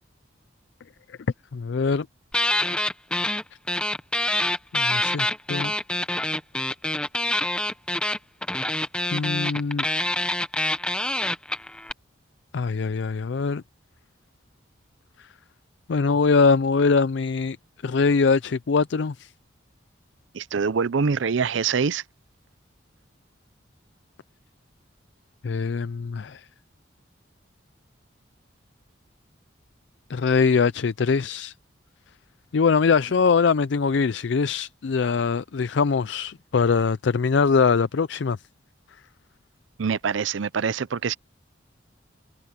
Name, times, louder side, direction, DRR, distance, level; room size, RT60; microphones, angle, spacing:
voice 1, 1.5-2.1 4.7-5.7 9.1-9.9 12.5-13.6 15.9-17.6 17.8-19.3 25.4-26.4 30.1-31.5 32.5-38.4, left 5 dB, 65° left, 0.4 m, -22 dB
sound 1, 2.3-3.4 3.7-11.9, left 1 dB, 5° left, 0.8 m, -26 dB
voice 2, 20.3-22.0 39.8-41.1, right 5 dB, 75° right, 0.5 m, -24 dB
head